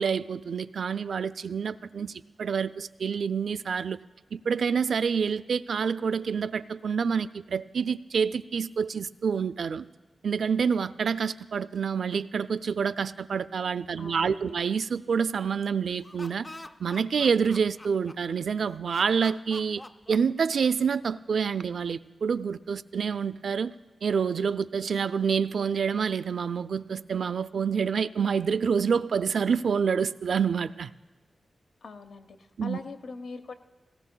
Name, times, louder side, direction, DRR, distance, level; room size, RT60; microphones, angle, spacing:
voice 1, 0.0-4.0 4.3-9.9 10.2-16.5 16.8-19.8 20.1-23.7 24.0-30.9 32.6-32.8, right 6 dB, 75° right, 14 dB, 0.3 m, -27 dB
voice 2, 14.0-14.6 31.8-33.5, left 4 dB, 85° left, 7 dB, 0.7 m, -42 dB
Laughter, 15.9-18.4 18.9-20.9, left 1 dB, 20° left, 0.4 m, -45 dB
18.5 x 18.0 x 2.2 m, 1.3 s
wide cardioid pair, 145°, 0 cm